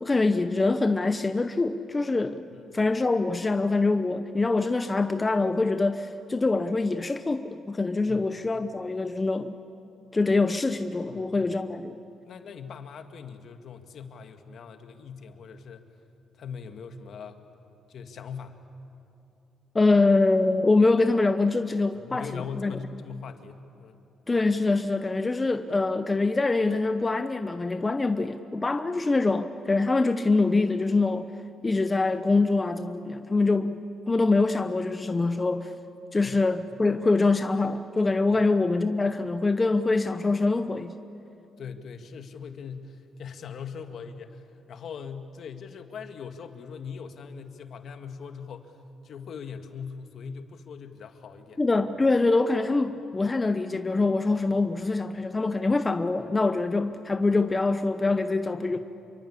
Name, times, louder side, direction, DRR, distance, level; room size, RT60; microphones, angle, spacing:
voice 1, 0.0-2.4 2.7-9.6 10.1-12.0 19.7-22.8 24.3-31.3 31.6-35.7 36.1-40.9 51.6-58.8, left 3 dB, 20° left, 9 dB, 0.9 m, -24 dB
voice 2, 2.5-2.8 8.1-8.3 11.0-11.4 12.2-15.9 16.4-17.4 17.9-18.6 21.9-24.0 36.2-36.4 38.3-38.4 41.6-48.8 49.0-51.6 58.7-58.8, left 6 dB, 65° left, 6 dB, 1.9 m, -41 dB
27.5 x 23.5 x 8.6 m, 2.8 s
cardioid pair, 90°, 0 cm